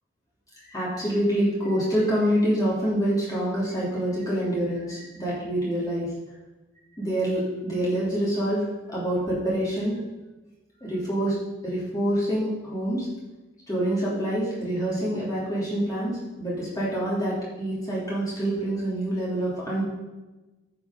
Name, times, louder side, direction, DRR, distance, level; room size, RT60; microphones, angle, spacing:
voice 1, 0.7-6.1 7.0-9.9 10.8-11.4 11.6-13.1 13.7-16.1 16.4-19.9, right 1 dB, 20° left, -7 dB, 3.0 m, -26 dB
14.0 x 5.9 x 5.2 m, 1.1 s
head